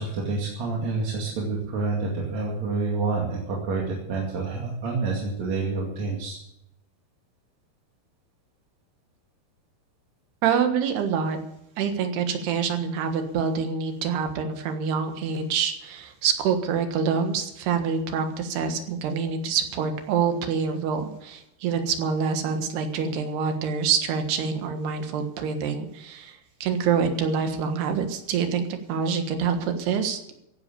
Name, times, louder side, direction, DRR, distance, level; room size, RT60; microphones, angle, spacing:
voice 1, 0.0-6.4, right 3 dB, 45° right, -3 dB, 3.3 m, -28 dB
voice 2, 10.4-11.4 11.8-30.3, right 6 dB, 80° right, 6 dB, 3.6 m, -26 dB
15.5 x 10.5 x 7.0 m, 0.81 s
omnidirectional pair, 4.7 m